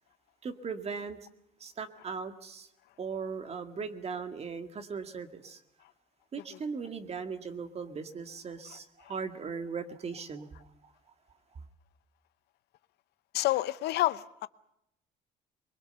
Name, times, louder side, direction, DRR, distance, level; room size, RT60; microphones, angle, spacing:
voice 1, 0.4-1.2 1.6-2.7 3.0-5.6 6.3-10.9, right 5 dB, 40° right, 2.1 m, -38 dB
voice 2, 13.3-14.5, left 16 dB, 80° left, 0.8 m, -28 dB
23.5 x 22.0 x 6.9 m
cardioid pair, 110°, 17 cm